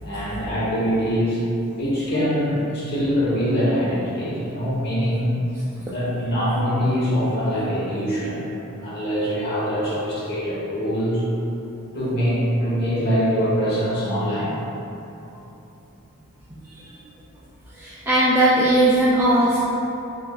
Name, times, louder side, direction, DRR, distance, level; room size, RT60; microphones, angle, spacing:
voice 1, 0.0-1.4 1.8-5.3 5.9-8.5 8.8-11.2 11.9-14.5, equal, 50° left, -8 dB, 1.2 m, -23 dB
voice 2, 17.7-19.7, right 1 dB, 10° right, -9 dB, 0.3 m, -19 dB
6.1 x 2.7 x 2.3 m, 3.0 s
head